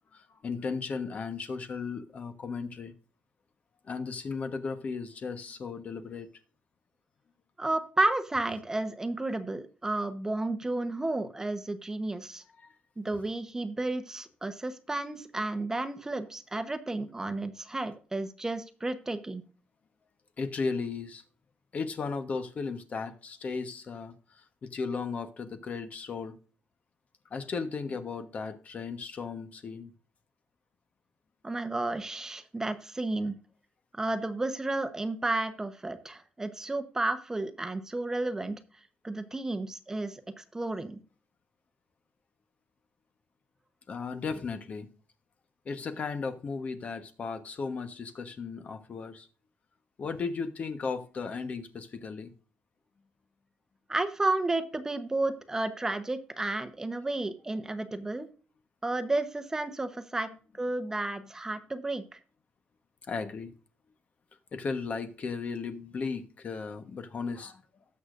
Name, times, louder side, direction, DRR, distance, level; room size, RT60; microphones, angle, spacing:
voice 1, 0.1-2.9 3.8-6.3 12.6-12.7 20.4-21.2 21.7-26.4 27.3-29.9 43.9-44.9 45.6-49.3 50.0-52.3 63.1-63.5 64.5-67.6, left 5 dB, 45° left, 1.1 m, -35 dB
voice 2, 7.6-12.4 13.0-19.4 31.4-33.4 33.9-38.6 39.0-41.0 53.9-58.3 58.8-60.3 60.6-62.2, right 2 dB, 15° right, 0.9 m, -32 dB
19.0 x 6.6 x 2.5 m
cardioid pair, 120°, 3 cm